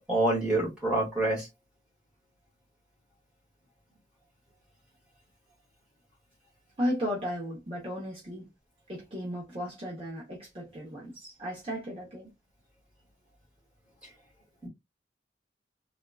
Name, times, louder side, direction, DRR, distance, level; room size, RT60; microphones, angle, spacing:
voice 1, 0.1-1.5, right 2 dB, 5° right, 1.8 m, -26 dB
voice 2, 6.8-8.5 8.9-12.3, equal, 30° right, 1.0 m, -35 dB
3.6 x 2.5 x 2.3 m
head